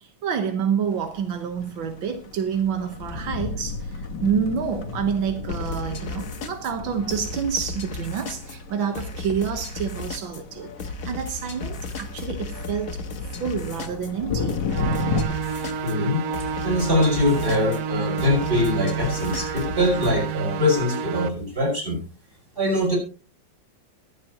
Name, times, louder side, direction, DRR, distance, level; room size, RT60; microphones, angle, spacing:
voice 1, 0.0-13.0 13.4-14.6, right 7 dB, 85° right, 2.0 m, -28 dB
sound 1, 0.9-15.2, left 5 dB, 65° left, 1.8 m, -34 dB
sound 2, 5.5-20.3, left 3 dB, 50° left, 1.6 m, -35 dB
sound 3, 14.7-21.3, right 8 dB, 60° right, 1.1 m, -29 dB
voice 2, 15.8-16.2 16.6-22.0 22.5-23.0, left 1 dB, 25° right, 5.6 m, -23 dB
22.5 x 7.6 x 3.0 m
omnidirectional pair, 2.1 m